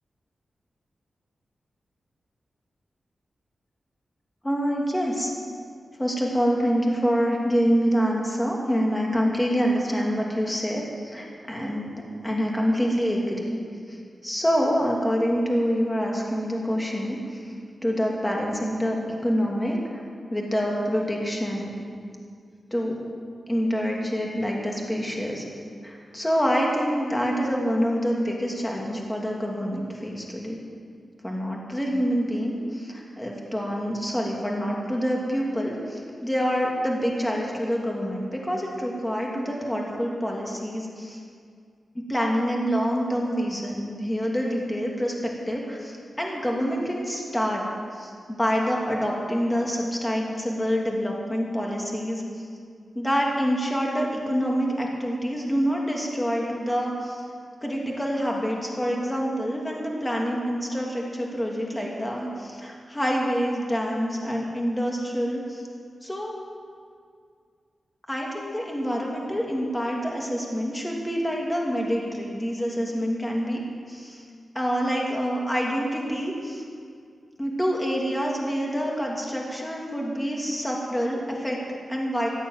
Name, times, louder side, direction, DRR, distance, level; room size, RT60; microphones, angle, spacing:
voice 1, 4.4-5.3 6.0-13.6 13.9-14.0 14.2-17.4 17.8-19.8 20.3-21.8 22.7-23.0 23.5-25.4 25.8-30.6 31.2-41.2 41.9-47.6 47.9-52.4 52.9-57.2 57.6-65.6 66.0-66.3 68.1-73.6 73.9-74.2 74.5-76.6 77.4-82.3, equal, 10° left, -2 dB, 2.7 m, -26 dB
15.0 x 9.4 x 9.3 m, 2.2 s
wide cardioid pair, 130°, 0 cm